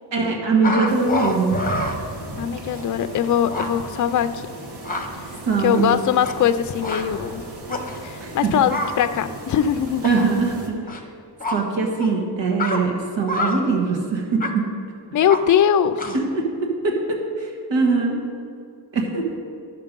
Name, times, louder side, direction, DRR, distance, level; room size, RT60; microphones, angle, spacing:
voice 1, 0.1-1.6 5.4-6.1 8.2-8.5 10.0-10.8 11.5-14.7 16.1-18.2 18.9-19.3, right 4 dB, 75° right, 0 dB, 1.5 m, -22 dB
sound 1, 0.6-2.0 2.7-2.8 3.2-3.3 3.5-3.7 4.6-5.1 5.7-6.6 6.8-7.0 7.7-8.0 8.7-9.0 10.0-10.3 10.9-11.0 11.4-11.6 12.0-12.1 12.6-12.8 13.3-13.6 14.4-14.5 15.3-15.4 16.0-16.3, left 1 dB, 20° left, 0.8 m, -27 dB
sound 2, 0.9-10.7, right 2 dB, 60° right, 1.5 m, -36 dB
voice 2, 2.4-4.5 5.6-7.4 8.0-10.1 15.1-16.0, left 9 dB, 45° left, 11 dB, 0.4 m, -21 dB
11.5 x 6.8 x 5.2 m, 2.4 s
wide cardioid pair, 145°, 44 cm